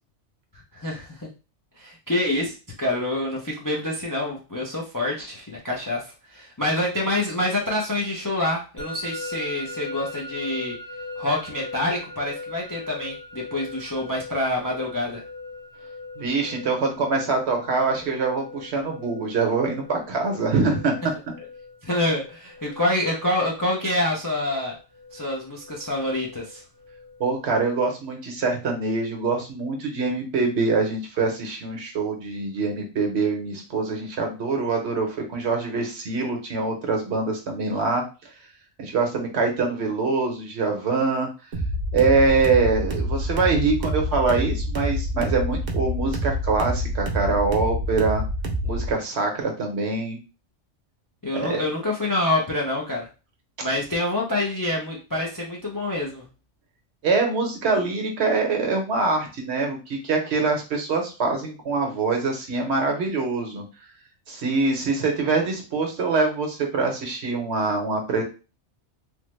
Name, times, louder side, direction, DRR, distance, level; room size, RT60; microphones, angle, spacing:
voice 1, 0.7-1.3 1.8-10.8 11.2-15.2 21.8-24.8 25.1-26.6 51.2-53.1 53.6-56.2, left 1 dB, 30° left, -2 dB, 0.4 m, -26 dB
Musical instrument, 8.8-27.7, left 2 dB, 60° left, 1.8 m, -40 dB
voice 2, 16.2-21.0 27.2-38.0 38.8-41.3 41.9-48.2 48.6-50.2 51.3-51.6 57.0-63.6 64.3-68.2, right 4 dB, 70° right, 2 dB, 1.1 m, -24 dB
sound 1, 41.5-48.9, equal, 45° right, 0.7 m, -27 dB
3.4 x 2.0 x 3.1 m, 0.32 s
omnidirectional pair, 1.2 m